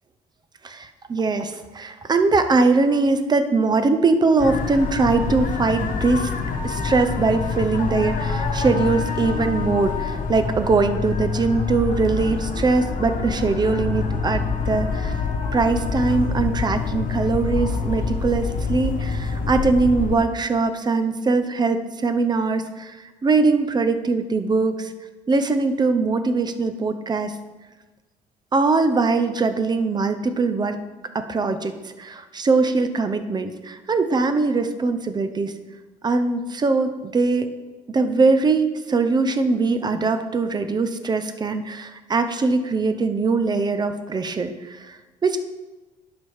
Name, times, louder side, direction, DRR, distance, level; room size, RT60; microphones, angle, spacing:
voice 1, 0.6-6.3 6.6-15.1 15.5-23.0 23.2-24.9 25.3-27.4 28.5-30.8 31.1-35.5 36.0-37.5 37.9-45.4, right 3 dB, 25° right, 9 dB, 0.6 m, -21 dB
sound 1, 4.4-20.2, left 4 dB, 50° left, 1.1 m, -26 dB
11.5 x 4.8 x 3.5 m, 1.2 s
cardioid pair, 110°, 17 cm